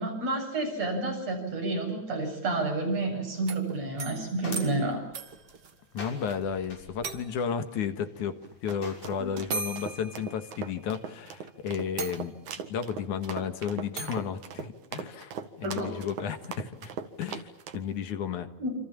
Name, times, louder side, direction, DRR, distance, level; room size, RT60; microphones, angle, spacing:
voice 1, 0.0-5.0 9.2-9.3 15.6-15.9 18.6-18.8, right 2 dB, 60° right, 1 dB, 9.2 m, -30 dB
sound 1, 3.3-6.4 6.6-6.7 7.0-7.6 8.7-8.8 9.5-10.9 11.4-11.5 12.0-12.7 14.0-14.3, right 4 dB, 40° right, 1.8 m, -39 dB
sound 2, 3.8-9.4, left 2 dB, 60° left, 7.5 m, -47 dB
voice 2, 5.9-12.3 12.7-15.3 15.6-16.9 17.2-17.5 17.7-18.5, left 7 dB, 80° left, 9 dB, 3.0 m, -33 dB
sound 3, 8.4-17.8, right 7 dB, 75° right, 3.1 m, -40 dB
27.5 x 26.5 x 7.5 m, 0.81 s
omnidirectional pair, 3.4 m